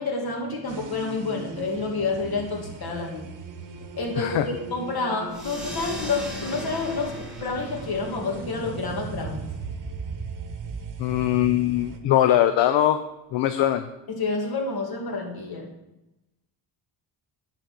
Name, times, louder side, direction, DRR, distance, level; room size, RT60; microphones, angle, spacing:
voice 1, 0.0-3.3 3.9-9.5 14.1-15.7, left 3 dB, 55° left, 0 dB, 2.4 m, -29 dB
sound 1, 0.7-12.0, right 5 dB, 45° right, 1.0 m, -38 dB
voice 2, 4.2-4.5 11.0-13.0 13.3-13.9, left 12 dB, 70° left, 10 dB, 0.6 m, -21 dB
sound 2, 5.3-10.4, equal, ahead, 2.1 m, -39 dB
10.0 x 4.3 x 6.2 m, 0.95 s
cardioid pair, 95°, 45 cm